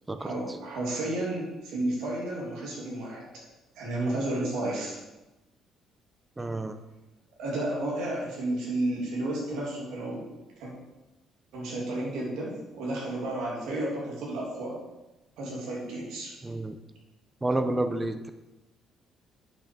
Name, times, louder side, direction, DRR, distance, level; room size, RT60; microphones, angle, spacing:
voice 1, 0.2-3.2 3.8-5.0 7.4-10.2 10.6-10.7 11.5-14.8 15.4-16.3, right 1 dB, 90° right, -4 dB, 2.7 m, -32 dB
voice 2, 6.4-6.7 16.4-16.7 17.4-18.3, right 2 dB, 15° right, 9 dB, 0.6 m, -29 dB
8.8 x 5.9 x 5.2 m, 1.0 s
cardioid pair, 150°, 0 cm